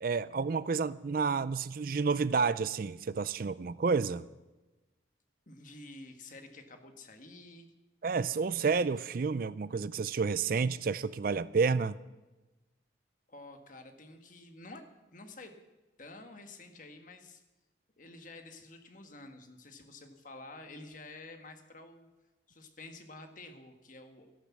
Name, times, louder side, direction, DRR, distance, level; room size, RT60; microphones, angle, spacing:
voice 1, 0.0-4.2 8.0-12.0, right 5 dB, 50° right, 17 dB, 0.4 m, -30 dB
voice 2, 5.5-7.7 13.3-15.6 16.0-17.4 18.0-22.1 22.5-24.3, left 2 dB, 45° left, 6 dB, 1.6 m, -50 dB
13.5 x 12.0 x 7.4 m, 1.1 s
head